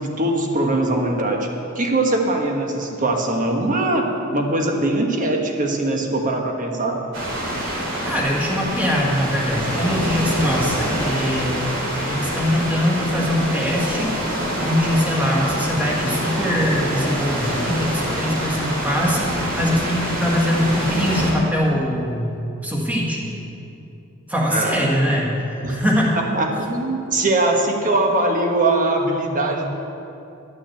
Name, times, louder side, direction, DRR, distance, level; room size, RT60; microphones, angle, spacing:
voice 1, 0.0-1.5 1.7-4.0 4.3-7.0 24.5-25.0 25.6-25.8 26.3-29.7, right 2 dB, 40° right, 2 dB, 1.4 m, -21 dB
sound 1, 7.1-21.3, equal, 65° right, 3.1 m, -25 dB
voice 2, 8.0-11.7 12.1-22.4 22.6-23.3 24.3-26.1, equal, 10° right, -3 dB, 1.9 m, -22 dB
11.5 x 6.3 x 8.9 m, 2.8 s
head